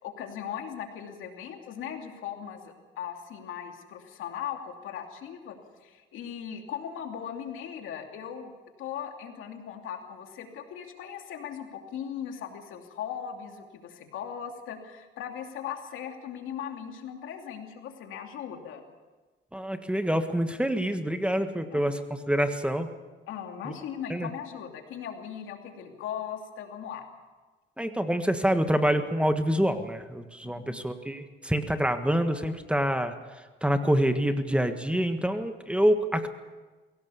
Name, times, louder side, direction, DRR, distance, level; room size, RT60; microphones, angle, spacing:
voice 1, 0.0-8.5 8.8-18.8 21.7-21.8 23.3-27.0 30.4-30.8, left 8 dB, 85° left, 4 dB, 2.7 m, -38 dB
voice 2, 19.5-22.9 23.6-23.7 24.1-24.3 27.8-36.3, equal, 5° right, 8 dB, 1.5 m, -26 dB
22.0 x 17.0 x 7.0 m, 1.3 s
cardioid pair, 90°, 20 cm